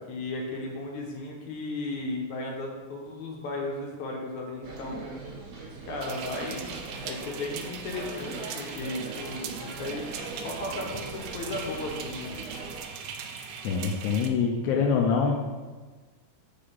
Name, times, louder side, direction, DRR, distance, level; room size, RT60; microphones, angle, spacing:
voice 1, 0.0-5.1 5.9-6.7 7.0-10.1 10.4-12.3, left 2 dB, 70° left, 0 dB, 1.9 m, -35 dB
sound 1, 4.6-12.8, right 3 dB, 60° right, 3.2 m, -40 dB
sound 2, 6.0-14.3, right 6 dB, 80° right, 2.3 m, -40 dB
voice 2, 13.6-15.4, left 5 dB, 85° left, 0 dB, 1.7 m, -25 dB
5.6 x 5.1 x 5.6 m, 1.3 s
omnidirectional pair, 4.3 m